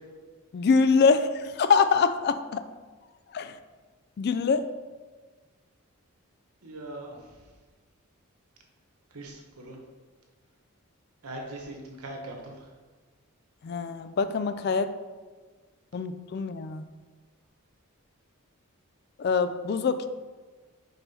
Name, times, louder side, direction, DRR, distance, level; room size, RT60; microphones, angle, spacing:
voice 1, 0.5-2.6 3.3-3.5 4.2-4.6 13.6-14.9 15.9-16.8 19.2-20.1, left 5 dB, 45° left, 11 dB, 0.3 m, -24 dB
voice 2, 6.6-7.4 9.1-9.8 11.2-12.7, right 1 dB, 85° right, 1 dB, 1.1 m, -41 dB
5.4 x 4.2 x 4.2 m, 1.4 s
head